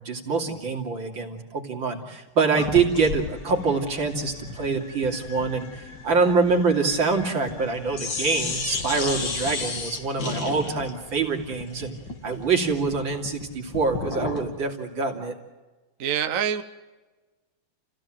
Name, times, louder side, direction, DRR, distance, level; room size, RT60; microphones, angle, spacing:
voice 1, 0.0-12.0 12.2-15.3, right 4 dB, 65° right, 1 dB, 3.6 m, -25 dB
sound 1, 2.5-7.7 7.9-14.5, left 4 dB, 60° left, 3.0 m, -33 dB
sound 2, 2.8-13.8, left 3 dB, 40° left, 4.3 m, -47 dB
voice 2, 16.0-16.6, right 8 dB, 50° right, 7 dB, 1.1 m, -25 dB
30.0 x 16.5 x 7.7 m, 1.2 s
omnidirectional pair, 2.3 m